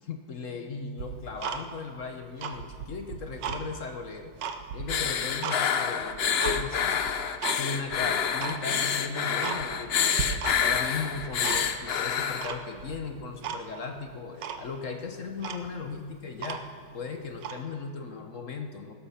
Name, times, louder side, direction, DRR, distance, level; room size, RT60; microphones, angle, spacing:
voice 1, 0.0-4.3 4.7-7.0 7.6-10.2 10.6-16.6 16.9-18.9, left 4 dB, 50° left, 5 dB, 1.1 m, -37 dB
Tick-tock, 1.0-2.0 2.3-3.6 4.1-5.6 6.0-6.6 7.1-7.6 7.9-8.0 8.4-8.6 9.0-9.1 9.4-9.9 10.2-10.8 11.1-11.9 12.4-13.0 13.4-13.6 14.0-14.1 14.4-14.6 15.1-15.2 15.4-16.9 17.4-17.6, right 7 dB, 75° right, 1.5 m, -35 dB
sound 1, 4.9-12.5, left 7 dB, 70° left, 0.5 m, -28 dB
16.0 x 13.0 x 5.7 m, 2.3 s
omnidirectional pair, 2.0 m